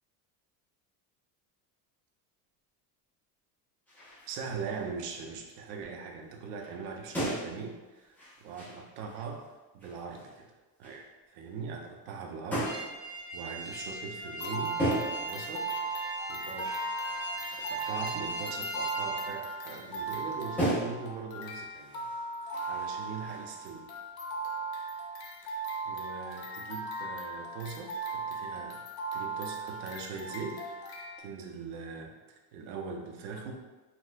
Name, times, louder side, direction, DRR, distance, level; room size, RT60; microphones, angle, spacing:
sound 1, 3.9-4.8 5.2-5.7 6.3-6.4 6.6-9.5 9.8-10.4 10.8-11.0 12.5-13.0 14.8-15.3 15.7-20.1 20.6-21.2 21.6-23.7, right 1 dB, 5° left, 0.3 m, -37 dB
voice 1, 4.3-9.5 9.7-10.5 10.8-12.7 13.0-13.1 13.3-14.8 15.2-15.7 16.3-16.7 17.5-22.0 22.4-23.9 25.4-33.5, right 5 dB, 85° right, 2 dB, 0.7 m, -41 dB
sound 2, 12.6-19.2, right 1 dB, 40° left, 1.0 m, -40 dB
sound 3, 14.2-31.2, right 3 dB, 60° left, 0.6 m, -37 dB
4.2 x 2.1 x 2.5 m, 1.2 s
cardioid pair, 175°, 44 cm